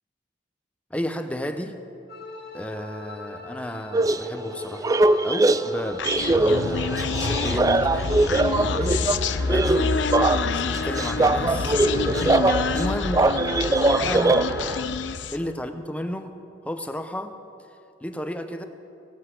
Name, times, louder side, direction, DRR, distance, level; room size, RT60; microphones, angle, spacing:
voice 1, 0.9-1.8 2.5-8.1 8.5-9.0 9.5-13.2 14.0-14.3 15.3-16.3 16.6-17.3 18.0-18.7, equal, 5° left, 7 dB, 0.7 m, -33 dB
sound 1, 2.1-13.7, left 4 dB, 60° left, 2.3 m, -45 dB
sound 2, 3.9-14.8, right 2 dB, 20° right, 0.3 m, -22 dB
Human voice, 6.0-15.5, left 4 dB, 75° left, 0.6 m, -27 dB
16.5 x 8.0 x 7.6 m, 2.5 s
head